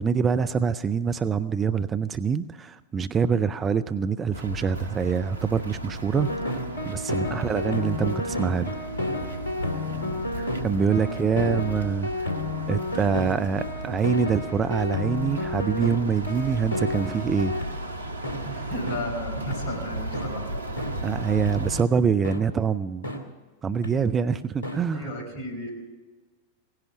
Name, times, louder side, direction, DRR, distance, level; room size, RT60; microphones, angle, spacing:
voice 1, 0.0-8.7 10.6-12.4 12.7-17.6 21.0-23.1 23.6-25.1, right 6 dB, 20° right, 13 dB, 0.4 m, -25 dB
sound 1, 4.3-21.8, right 1 dB, 80° right, 0.9 m, -35 dB
sound 2, 6.1-17.7 18.2-18.4 18.9-19.0 19.5-19.6 20.1-20.3 20.8-20.9 21.5-21.6 22.2-22.4 23.0-23.2 23.8-23.9 24.6-24.8, left 1 dB, 70° left, 2.1 m, -31 dB
voice 2, 7.2-7.5 9.9-10.3 10.9-11.3 18.3-20.7 24.9-25.7, left 1 dB, 45° left, 2 dB, 4.6 m, -36 dB
17.0 x 10.5 x 7.0 m, 1.3 s
figure-of-eight pair, 90°, 0 cm